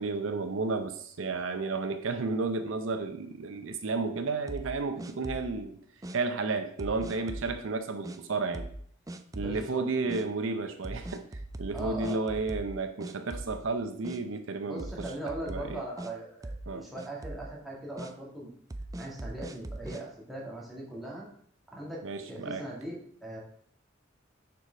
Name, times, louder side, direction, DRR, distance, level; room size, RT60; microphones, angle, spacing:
voice 1, 0.0-5.8 6.1-8.7 9.4-11.2 11.6-14.9 15.5-15.8 16.7-16.9 22.0-22.6, right 3 dB, 70° right, 7 dB, 0.6 m, -32 dB
sound 1, 4.5-5.6 6.0-6.2 6.8-7.5 8.0-8.2 8.5-8.8 9.1-9.6 10.1-10.2 10.8-12.8 13.0-13.7 14.0-14.2 14.8-16.1 16.4-16.7 17.0-17.5 18.0-18.1 18.7-20.0, right 1 dB, 15° right, 0.4 m, -40 dB
voice 2, 9.3-9.8 11.7-12.2 14.7-18.5 19.0-21.3 21.7-22.0 22.3-23.4, right 1 dB, ahead, -5 dB, 1.9 m, -40 dB
6.9 x 4.8 x 5.0 m, 0.62 s
head